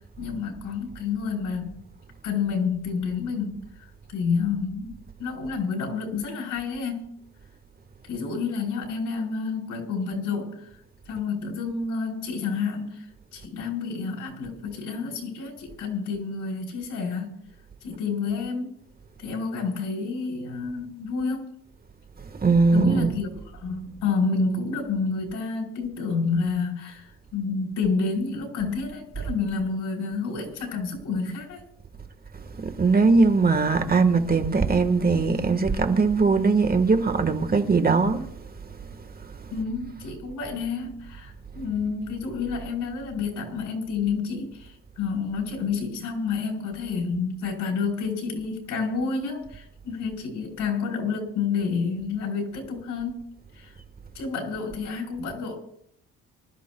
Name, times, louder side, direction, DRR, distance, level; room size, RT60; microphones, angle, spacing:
voice 1, 0.2-1.8 2.2-3.6 4.1-7.1 8.1-10.6 11.1-13.0 13.3-17.4 17.8-18.7 19.2-21.5 22.7-31.6 39.5-53.3 53.6-53.7 54.1-55.6, left 5 dB, 80° left, 4.4 m, -29 dB
voice 2, 22.4-23.1 32.6-38.3 39.2-39.5, right 4 dB, 30° right, 1.5 m, -20 dB
25.5 x 13.5 x 2.3 m
cardioid pair, 90°, 30 cm